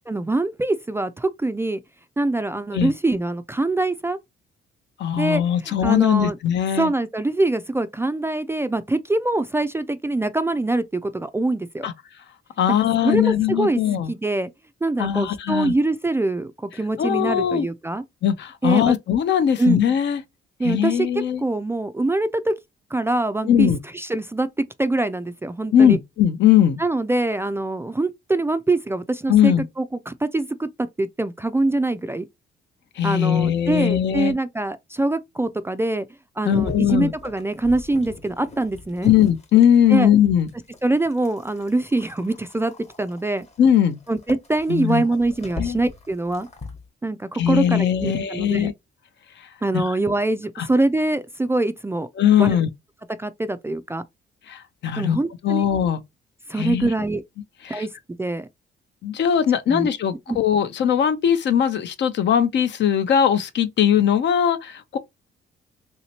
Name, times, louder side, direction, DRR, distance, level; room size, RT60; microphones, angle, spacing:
voice 1, 0.1-1.8 2.2-4.2 5.2-6.4 6.8-11.9 13.0-13.8 14.1-14.5 14.8-18.0 18.6-18.9 19.6-19.8 20.6-22.6 22.9-26.0 26.8-32.3 33.0-36.1 36.4-39.1 39.9-40.1 40.8-43.5 44.1-46.5 47.0-48.7 49.6-52.1 52.4-52.6 53.2-54.0 55.0-55.6 56.5-57.2 57.7-57.9 58.2-58.5 59.7-59.9 60.3-60.4, right 2 dB, 10° right, 0.3 m, -24 dB
voice 2, 5.0-6.9 11.8-11.9 12.6-14.1 15.0-15.7 17.0-17.7 18.2-20.2 20.6-21.4 23.5-23.8 25.7-26.8 29.3-29.6 33.0-34.3 36.4-37.1 39.0-40.5 43.6-44.0 44.7-45.0 45.6-45.8 47.4-48.7 49.7-49.8 50.6-50.7 52.2-52.7 54.5-55.2 55.4-56.0 56.6-56.9 57.7-57.8 59.0-65.0, left 9 dB, 65° left, 0.6 m, -19 dB
sound 1, 36.7-39.9 40.4-46.9, left 3 dB, 35° left, 1.0 m, -41 dB
3.1 x 2.8 x 2.8 m
cardioid pair, 90°, 20 cm